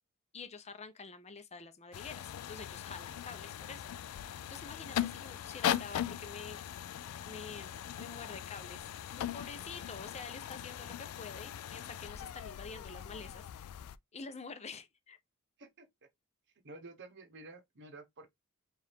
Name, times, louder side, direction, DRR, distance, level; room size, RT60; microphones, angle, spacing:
voice 1, 0.3-3.9 4.5-6.6 7.3-8.9 9.2-13.7 14.1-15.2, left 4 dB, 30° left, 0.6 m, -47 dB
sound 1, 1.9-14.0, left 10 dB, 85° left, 0.3 m, -40 dB
voice 2, 15.6-16.1 16.6-18.3, right 2 dB, 55° right, 1.0 m, -51 dB
4.7 x 2.5 x 3.5 m
head